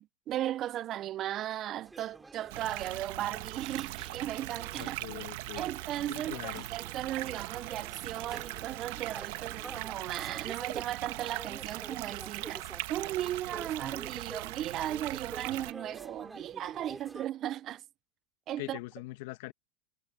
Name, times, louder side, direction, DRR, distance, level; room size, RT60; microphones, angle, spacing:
voice 1, 0.0-5.0 5.6-17.8 18.5-18.8, right 12 dB, 30° right, 0.4 m, -36 dB
sound 1, 1.9-17.3, right 3 dB, 10° right, 2.5 m, -49 dB
sound 2, 2.5-15.7, right 19 dB, 60° right, 1.0 m, -40 dB
voice 2, 4.8-5.6 6.1-6.7 18.6-19.5, left 21 dB, 60° left, 1.1 m, -42 dB
supercardioid pair, 150°, 0 cm